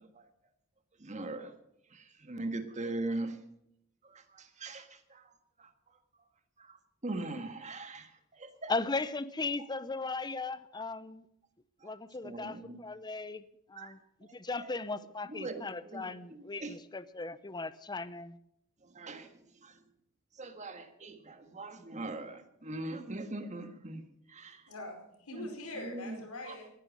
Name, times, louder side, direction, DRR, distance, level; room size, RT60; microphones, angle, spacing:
voice 1, 1.0-1.5 2.3-3.3 4.6-4.8 7.0-8.1 8.4-8.7 12.2-12.8 13.8-13.9 14.6-14.7 15.3-15.6 15.9-16.1 16.6-16.7 19.0-19.3 20.4-24.0 24.3-24.6 25.3-25.4 25.8-26.1, right 2 dB, 35° right, 8 dB, 1.6 m, -39 dB
voice 2, 8.7-11.2 11.8-13.4 13.7-18.4, left 3 dB, 20° left, 15 dB, 0.7 m, -37 dB
voice 3, 24.7-26.7, left 1 dB, 85° left, 3 dB, 4.8 m, -43 dB
18.5 x 10.5 x 6.3 m, 0.76 s
head